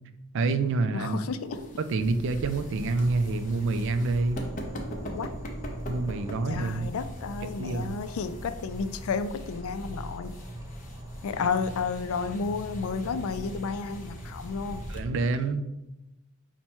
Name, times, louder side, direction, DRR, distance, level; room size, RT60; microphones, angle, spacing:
voice 1, 0.3-1.2 1.8-4.5 5.9-6.9 7.4-8.0 14.9-15.7, right 3 dB, 60° right, 10 dB, 0.4 m, -27 dB
voice 2, 0.9-1.6 5.1-5.3 6.5-10.4 11.2-14.9, left 5 dB, 70° left, 11 dB, 0.3 m, -32 dB
sound 1, 1.1-15.0, equal, 35° left, 0.6 m, -44 dB
sound 2, 2.4-14.9, equal, 15° right, 0.6 m, -41 dB
5.6 x 2.1 x 4.4 m, 0.94 s
head